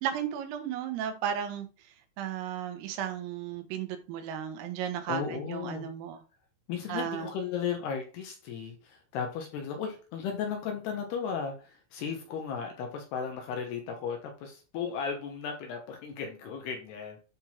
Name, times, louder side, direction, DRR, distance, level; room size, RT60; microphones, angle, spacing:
voice 1, 0.0-1.7 2.2-6.2 6.9-7.3, right 9 dB, 90° right, 3.8 m, -34 dB
voice 2, 5.1-5.9 6.7-17.2, left 6 dB, 70° left, 2.8 m, -35 dB
9.7 x 3.9 x 4.4 m
omnidirectional pair, 5.7 m